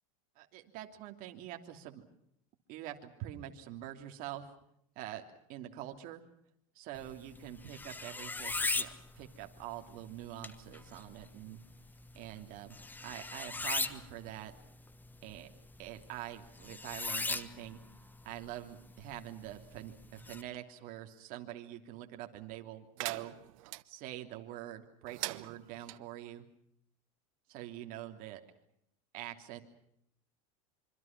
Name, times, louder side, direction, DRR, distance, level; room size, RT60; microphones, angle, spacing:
voice 1, 0.3-2.0 2.7-4.5 4.9-5.2 5.5-6.2 6.7-8.9 9.1-11.6 12.1-14.5 15.2-15.5 15.8-17.8 18.2-23.3 23.8-26.4 27.5-28.4 29.1-29.6, right 13 dB, 55° right, 4 dB, 3.1 m, -45 dB
sound 1, 7.0-20.4, left 3 dB, 10° left, 1.2 m, -41 dB
sound 2, 23.0-23.8 25.1-26.0, right 20 dB, 75° right, 1.0 m, -41 dB
26.0 x 25.5 x 6.0 m, 0.74 s
supercardioid pair, 130°, 18 cm